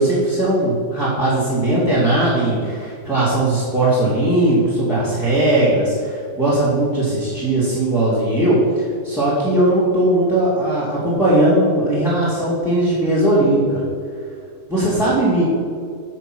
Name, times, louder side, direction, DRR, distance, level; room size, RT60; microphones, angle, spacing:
voice 1, 0.0-13.8 14.7-15.4, right 1 dB, ahead, -8 dB, 2.0 m, -18 dB
9.0 x 6.2 x 6.1 m, 2.3 s
omnidirectional pair, 1.9 m